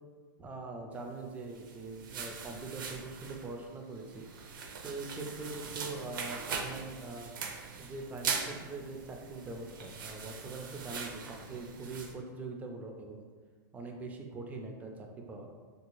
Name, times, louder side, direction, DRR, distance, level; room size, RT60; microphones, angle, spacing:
voice 1, 0.4-4.3 4.8-7.3 7.7-13.3 13.7-15.5, right 3 dB, 15° right, 3 dB, 0.3 m, -42 dB
sound 1, 1.4-12.1, right 5 dB, 80° right, 0.5 m, -41 dB
3.5 x 2.3 x 3.0 m, 1.5 s
supercardioid pair, 135°, 11 cm